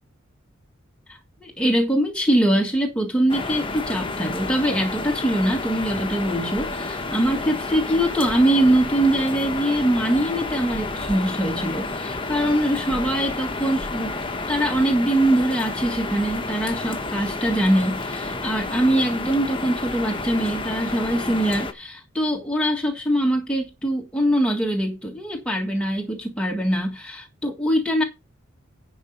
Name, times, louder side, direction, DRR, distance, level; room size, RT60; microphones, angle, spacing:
voice 1, 1.1-14.2 14.5-28.0, right 1 dB, 5° left, 1.7 m, -23 dB
sound 1, 3.3-21.7, left 3 dB, 25° left, 1.1 m, -30 dB
11.0 x 5.5 x 5.3 m
head